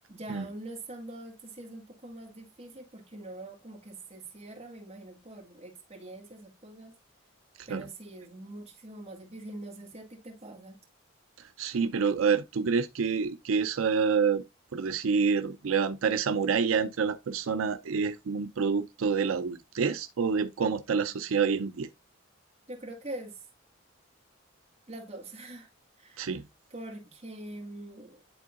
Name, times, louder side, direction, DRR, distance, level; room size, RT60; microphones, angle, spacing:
voice 1, 0.1-6.9 7.7-10.8 22.7-23.4 24.9-25.7 26.0-26.4 26.7-28.2, right 2 dB, 30° right, 2.0 m, -44 dB
voice 2, 11.4-14.4 14.7-21.9 26.2-26.4, right 5 dB, 85° right, 0.5 m, -28 dB
11.0 x 3.7 x 2.4 m
head